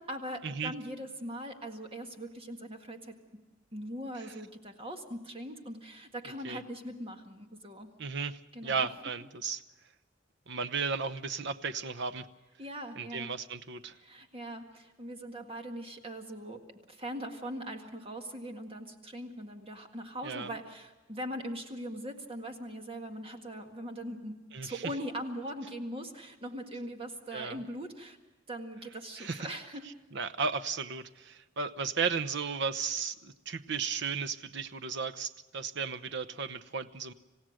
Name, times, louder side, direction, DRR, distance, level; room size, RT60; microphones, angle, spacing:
voice 1, 0.0-3.2 3.7-7.9 8.5-8.9 12.6-13.3 13.9-24.4 24.6-28.2 28.5-29.9, equal, 30° right, 5 dB, 1.8 m, -41 dB
voice 2, 8.0-9.6 10.5-12.3 13.0-13.9 20.2-20.5 24.5-24.8 27.3-27.6 29.2-29.5 30.1-37.1, right 5 dB, 65° right, 12 dB, 0.9 m, -35 dB
27.5 x 16.0 x 6.5 m, 1.1 s
head